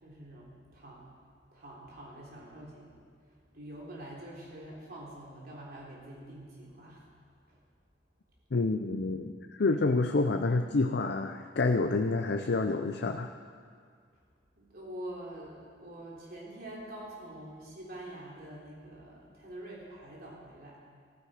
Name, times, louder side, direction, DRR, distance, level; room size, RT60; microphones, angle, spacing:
voice 1, 0.0-1.1 1.5-3.0 3.5-7.1 7.5-7.6 14.6-20.8, right 1 dB, 60° right, -4 dB, 3.4 m, -46 dB
voice 2, 8.5-13.3, left 3 dB, 65° left, 5 dB, 0.6 m, -28 dB
15.0 x 13.0 x 5.0 m, 2.1 s
head